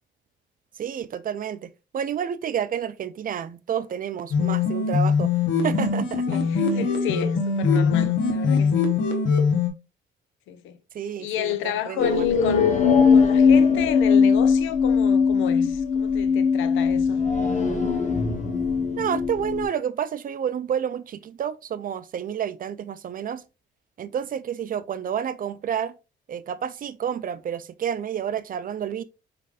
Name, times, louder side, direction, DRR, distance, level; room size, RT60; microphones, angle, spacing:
voice 1, 0.8-5.3 5.6-6.4 10.9-12.3 19.0-23.4 24.0-25.9 26.3-29.0, right 8 dB, 45° right, 0.4 m, -30 dB
sound 1, 4.3-9.7, left 5 dB, 70° left, 1.1 m, -22 dB
voice 2, 6.3-8.9 10.5-10.8 11.2-17.2, left 10 dB, 90° left, 0.6 m, -31 dB
sound 2, 12.0-19.7, left 5 dB, 35° left, 1.1 m, -20 dB
5.1 x 3.3 x 2.4 m
cardioid pair, 90°, 20 cm